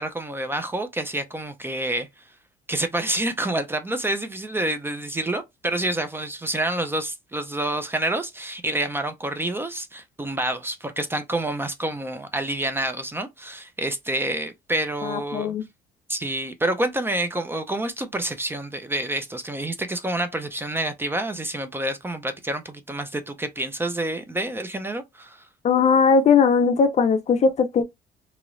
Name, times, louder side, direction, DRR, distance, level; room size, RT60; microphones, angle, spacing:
voice 1, 0.0-2.2 2.7-15.5 16.1-25.5, right 1 dB, 15° right, 0.5 m, -28 dB
voice 2, 15.0-15.6 25.6-27.8, left 5 dB, 40° left, 0.5 m, -19 dB
3.0 x 2.9 x 2.5 m
cardioid pair, 110°, 17 cm